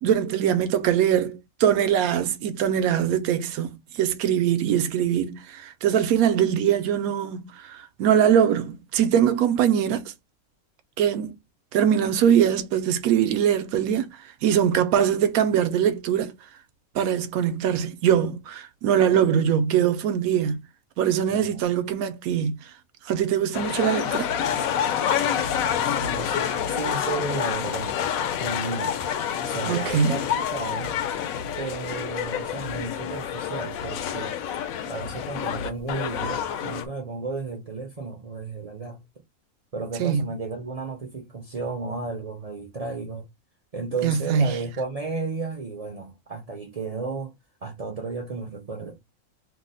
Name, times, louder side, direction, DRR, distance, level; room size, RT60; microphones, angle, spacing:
voice 1, 0.0-10.1 11.0-11.4 11.7-16.3 16.9-20.6 21.0-22.6 23.1-24.3 29.7-30.2 40.0-40.3 44.0-44.5, right 9 dB, 90° right, 1.0 m, -22 dB
sound 1, 23.5-36.8, left 8 dB, 80° left, 1.0 m, -28 dB
voice 2, 25.8-27.9 28.4-29.0 29.5-31.0 31.6-34.4 34.9-39.0 39.7-43.3 43.7-47.3 47.6-49.0, right 4 dB, 55° right, 0.4 m, -33 dB
2.8 x 2.1 x 3.8 m
omnidirectional pair, 1.5 m